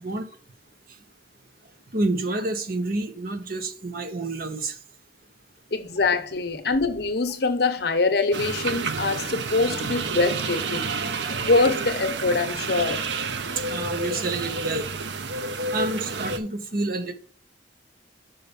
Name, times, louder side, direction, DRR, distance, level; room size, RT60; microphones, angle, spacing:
voice 1, 1.9-4.8 13.7-14.9 15.7-17.1, right 2 dB, 50° right, 1.0 m, -28 dB
voice 2, 5.7-10.8 11.3-13.0, left 3 dB, 60° left, 0.9 m, -24 dB
sound 1, 8.3-16.4, right 4 dB, 75° right, 0.7 m, -29 dB
5.7 x 5.6 x 5.2 m
head